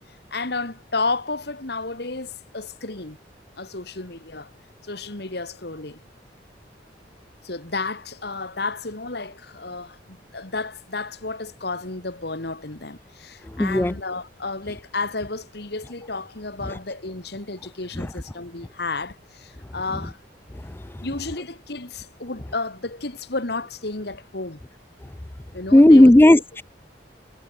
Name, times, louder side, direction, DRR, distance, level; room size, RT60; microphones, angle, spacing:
voice 1, 0.1-3.2 3.6-4.5 4.8-6.0 7.4-20.2 21.0-24.6 25.5-26.4, left 3 dB, 60° left, 2.2 m, -32 dB
voice 2, 13.5-13.9 18.0-18.1 20.6-21.0 25.7-26.6, left 1 dB, 10° left, 0.4 m, -14 dB
head